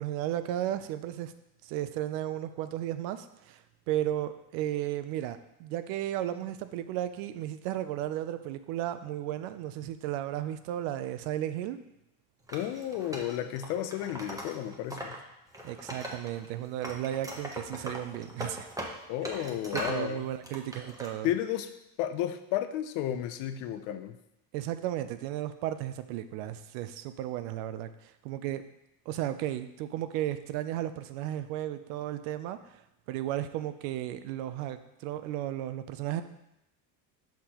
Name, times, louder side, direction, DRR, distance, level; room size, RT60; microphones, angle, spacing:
voice 1, 0.0-1.3 1.6-11.8 15.6-18.7 19.4-19.5 19.7-21.3 24.5-28.6 29.1-32.8 33.1-36.2, right 12 dB, 85° right, 11 dB, 0.6 m, -34 dB
voice 2, 12.5-15.2 19.1-20.3 21.2-21.7 22.0-24.2, left 11 dB, 75° left, 9 dB, 0.7 m, -32 dB
Wood, 12.5-15.2 15.5-16.5 16.8-20.0 20.4-21.1, right 1 dB, 10° right, 0.9 m, -40 dB
6.5 x 5.8 x 2.9 m, 0.86 s
cardioid pair, 125°, 42 cm